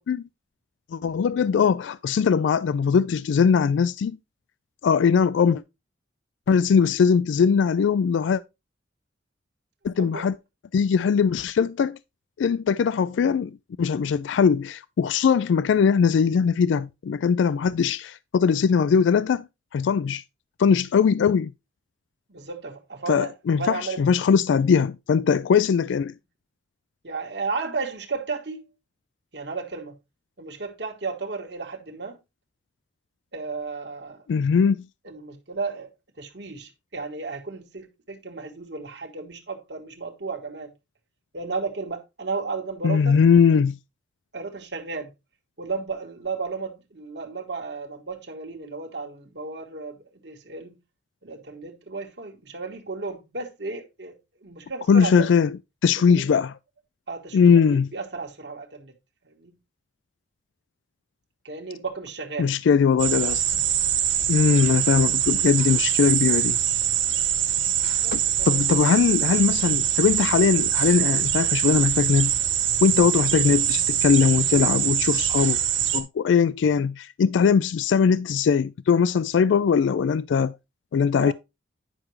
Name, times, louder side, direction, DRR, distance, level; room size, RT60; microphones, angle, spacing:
voice 1, 0.9-4.2 4.8-5.6 6.5-8.4 9.8-10.3 10.7-12.0 12.4-13.5 13.8-19.5 19.7-20.2 20.6-21.5 23.1-26.1 34.3-34.8 42.8-43.8 54.9-55.5 55.8-56.5 57.3-57.9 62.4-63.4 64.3-66.6 68.1-68.2 68.5-72.3 72.8-75.6 75.9-80.5 80.9-81.3, left 6 dB, 80° left, 0.3 m, -20 dB
voice 2, 22.3-23.3 23.6-24.0 27.0-28.7 29.3-30.0 30.4-32.2 33.3-34.2 35.0-35.9 36.2-40.7 41.3-43.2 44.3-45.1 45.6-50.7 51.2-54.1 54.4-55.3 56.0-56.3 57.1-58.9 59.2-59.5 61.4-62.5 67.9-68.8 81.1-81.3, right 4 dB, 65° right, 1.4 m, -34 dB
sound 1, 63.0-76.0, right 10 dB, 85° right, 1.6 m, -23 dB
9.9 x 5.9 x 3.1 m
head